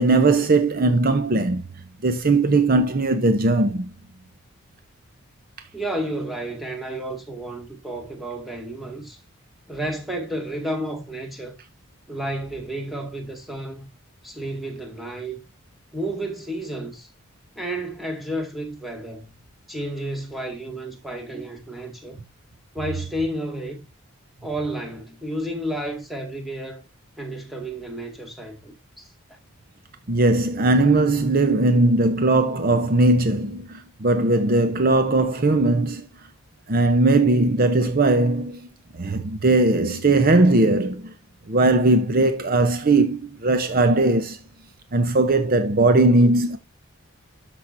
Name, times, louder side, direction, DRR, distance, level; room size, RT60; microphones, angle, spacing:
voice 1, 0.0-1.6 2.0-3.9 30.1-36.0 36.7-38.7 38.9-41.1 41.5-44.4 44.9-46.6, right 2 dB, 40° right, 0.7 m, -19 dB
voice 2, 5.7-9.2 9.7-11.6 12.1-13.9 14.2-15.4 15.9-17.1 17.6-19.4 19.7-22.2 22.7-23.8 24.4-26.8 27.2-29.1, right 1 dB, ahead, 2.0 m, -31 dB
12.5 x 5.9 x 2.6 m
head